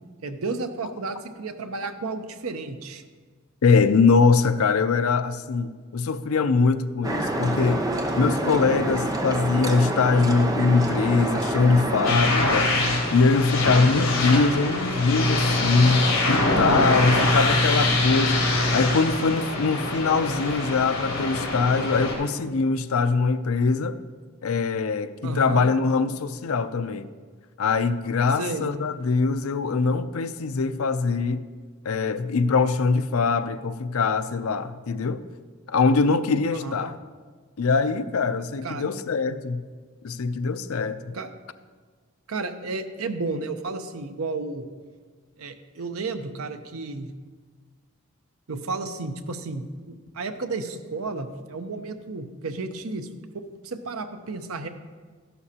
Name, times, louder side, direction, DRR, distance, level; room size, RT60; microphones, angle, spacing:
voice 1, 0.2-3.0 16.9-17.4 25.2-25.7 28.4-28.7 36.5-36.9 38.6-38.9 41.1-41.3 42.3-44.7 45.4-47.1 48.5-53.1 53.3-54.7, right 3 dB, 85° right, 8 dB, 0.8 m, -32 dB
voice 2, 3.6-7.9 8.2-12.7 13.1-24.0 24.4-27.1 27.6-31.4 31.8-35.2 35.7-37.0 37.6-39.6 40.0-41.2, left 4 dB, 85° left, 12 dB, 0.5 m, -22 dB
sound 1, 7.0-12.2, right 1 dB, 15° right, 0.7 m, -27 dB
sound 2, 12.0-22.1, left 2 dB, 70° left, 3.4 m, -23 dB
13.5 x 11.0 x 2.9 m, 1.5 s
head